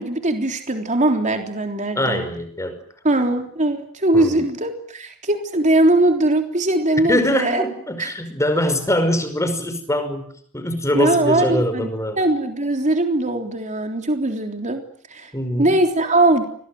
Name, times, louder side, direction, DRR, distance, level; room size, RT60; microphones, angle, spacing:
voice 1, 0.0-2.2 3.0-7.6 8.0-8.1 10.9-11.9 12.2-14.8 15.1-15.3 15.6-16.4, right 2 dB, 35° right, 5 dB, 3.6 m, -20 dB
voice 2, 2.0-2.8 4.1-4.4 7.1-12.2 15.3-15.7, left 1 dB, 15° left, 9 dB, 5.5 m, -23 dB
29.0 x 23.5 x 7.9 m, 0.62 s
head